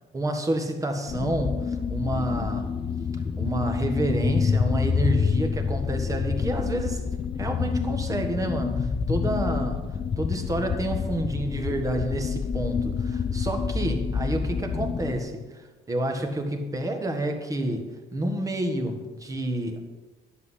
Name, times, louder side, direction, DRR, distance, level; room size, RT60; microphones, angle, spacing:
voice 1, 0.1-2.7 3.4-7.0 7.4-9.8 10.2-19.8, right 1 dB, 20° right, 4 dB, 1.6 m, -29 dB
sound 1, 1.1-15.2, left 6 dB, 30° left, 0.6 m, -27 dB
10.5 x 8.1 x 5.7 m, 1.2 s
cardioid pair, 110°, 17 cm